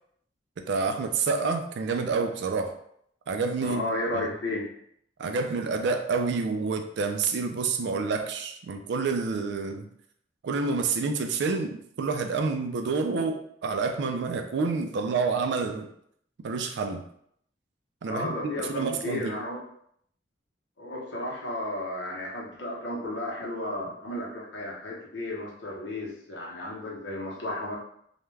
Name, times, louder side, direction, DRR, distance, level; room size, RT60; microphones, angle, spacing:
voice 1, 0.6-2.8 3.3-3.8 4.1-4.3 5.2-9.9 10.4-15.9 16.4-17.0 18.0-19.3, right 4 dB, 65° right, 5 dB, 0.3 m, -28 dB
voice 2, 3.6-4.7 18.0-19.6 20.8-27.8, left 1 dB, 75° left, -3 dB, 0.8 m, -33 dB
2.3 x 2.2 x 3.1 m, 0.69 s
head